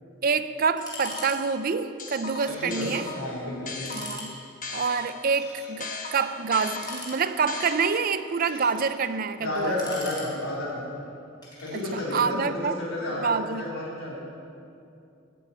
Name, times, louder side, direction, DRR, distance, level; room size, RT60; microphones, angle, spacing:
voice 1, 0.2-3.1 3.9-4.4 4.7-9.8 11.7-12.8 13.2-13.8, right 5 dB, 45° right, 13 dB, 0.4 m, -27 dB
sound 1, 0.8-1.5 2.0-5.3 5.8-8.3, left 3 dB, 40° left, 1.3 m, -37 dB
sound 2, 0.8-1.4 1.6-1.7 2.4-2.8 3.2-3.3 3.7-4.3 5.2-5.8 6.7-7.5 8.1-8.9 9.5-10.7 11.4-12.1, left 2 dB, 20° left, 3.6 m, -42 dB
voice 2, 2.5-2.9 3.1-3.9 9.4-10.8 11.6-13.3 13.6-14.2, left 1 dB, 90° left, -5 dB, 3.9 m, -31 dB
14.0 x 7.1 x 8.7 m, 2.6 s
head